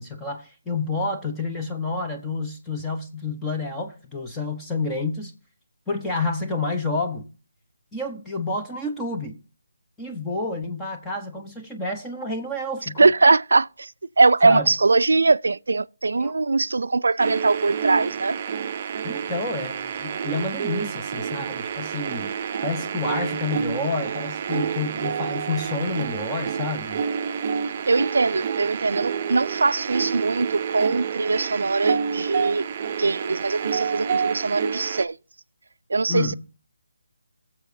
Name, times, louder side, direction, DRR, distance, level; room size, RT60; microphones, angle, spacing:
voice 1, 0.0-5.3 5.9-7.3 7.9-9.4 10.0-13.1 14.4-14.7 16.2-16.3 19.0-22.3 22.6-27.0 36.1-36.3, left 3 dB, 5° left, 0.9 m, -29 dB
voice 2, 13.0-13.9 14.2-18.4 27.9-32.6 33.0-35.1 35.9-36.3, right 3 dB, 75° right, 0.4 m, -21 dB
sound 1, 17.2-35.0, right 7 dB, 30° right, 0.6 m, -29 dB
18.0 x 7.1 x 2.7 m
hypercardioid pair, 165°, 0 cm